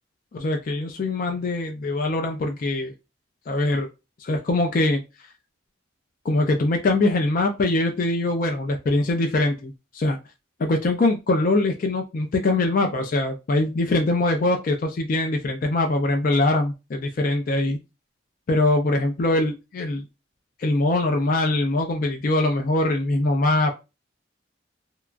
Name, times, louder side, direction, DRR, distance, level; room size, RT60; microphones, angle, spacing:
voice 1, 0.3-2.9 3.5-3.9 4.2-5.0 6.2-10.2 10.6-17.8 18.5-20.0 20.6-23.7, left 2 dB, 45° left, 3 dB, 0.4 m, -22 dB
2.8 x 2.3 x 2.4 m, 0.26 s
head